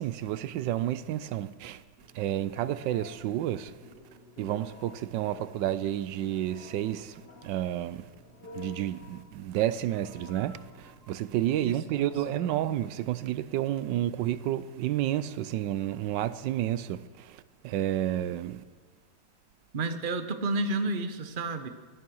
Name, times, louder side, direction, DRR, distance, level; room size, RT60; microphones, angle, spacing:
voice 1, 0.0-1.8 2.1-3.8 4.4-8.1 8.5-18.6, right 12 dB, 85° right, 1.3 m, -30 dB
Telephone, 2.0-13.2, left 3 dB, 60° left, 3.4 m, -51 dB
voice 2, 11.6-12.1 19.7-21.7, right 2 dB, 35° right, 1.0 m, -31 dB
17.5 x 12.5 x 6.3 m
omnidirectional pair, 1.9 m